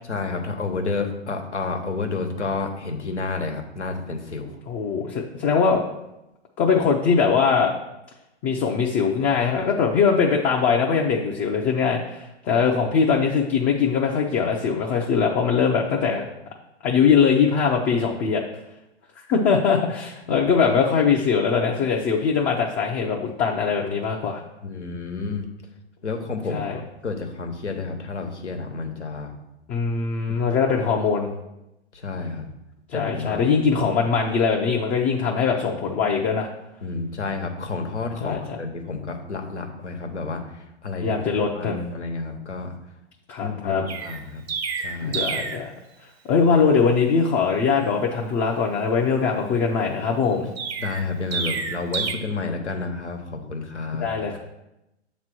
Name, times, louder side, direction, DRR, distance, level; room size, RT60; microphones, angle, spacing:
voice 1, 0.1-4.5 20.2-20.5 24.6-25.5 26.0-26.7 27.0-29.3 30.8-30.9 31.9-32.5 32.9-33.4 36.8-40.4 40.8-41.2 41.5-42.7 43.4-44.5 44.8-45.2 50.8-54.1, left 3 dB, 85° left, 4 dB, 1.2 m, -30 dB
voice 2, 4.7-5.8 6.6-7.7 8.4-16.3 16.8-18.4 19.3-24.4 26.5-26.8 29.7-31.3 32.9-36.5 38.2-38.4 41.0-41.8 43.3-43.9 45.0-45.7 46.3-50.5 53.9-54.4, left 5 dB, 25° left, -1 dB, 0.6 m, -21 dB
Chirp tweet, 43.9-45.7 50.6-52.1, right 5 dB, 60° right, 1.0 m, -29 dB
7.3 x 3.1 x 6.0 m, 0.91 s
figure-of-eight pair, 115°, 34 cm